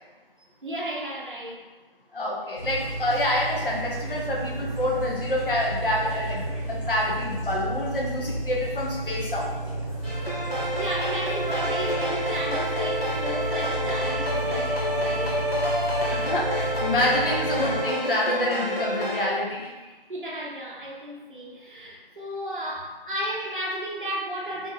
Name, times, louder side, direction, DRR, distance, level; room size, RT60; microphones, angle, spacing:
voice 1, 0.6-1.5 10.3-15.5 19.8-24.7, right 1 dB, 55° right, -3 dB, 0.5 m, -34 dB
voice 2, 2.1-9.5 16.0-19.7, left 1 dB, 65° left, -3 dB, 0.6 m, -27 dB
sound 1, 2.6-17.8, right 1 dB, 30° right, 0.9 m, -32 dB
sound 2, 10.0-19.2, equal, 85° left, 1.0 m, -28 dB
2.5 x 2.1 x 2.7 m, 1.2 s
figure-of-eight pair, 175°, 30 cm